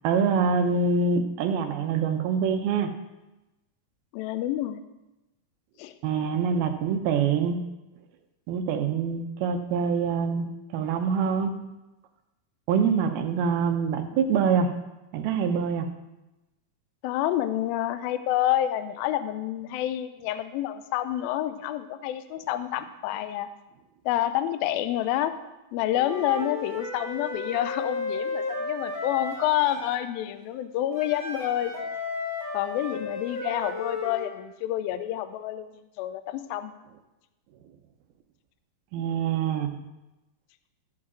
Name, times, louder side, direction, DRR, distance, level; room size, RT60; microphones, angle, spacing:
voice 1, 0.0-2.9 6.0-7.6 8.5-10.5 10.7-11.5 12.7-14.7 15.1-15.9 38.9-39.8, right 6 dB, 80° right, 6 dB, 2.6 m, -25 dB
voice 2, 4.1-4.8 5.8-6.0 17.0-23.5 24.1-25.4 25.7-31.7 32.5-36.7, left 12 dB, 80° left, 11 dB, 2.3 m, -28 dB
Wind instrument woodwind instrument, 25.9-30.0 30.9-34.3, left 3 dB, 30° left, 2.0 m, -34 dB
14.5 x 5.0 x 6.1 m, 1.0 s
omnidirectional pair, 4.5 m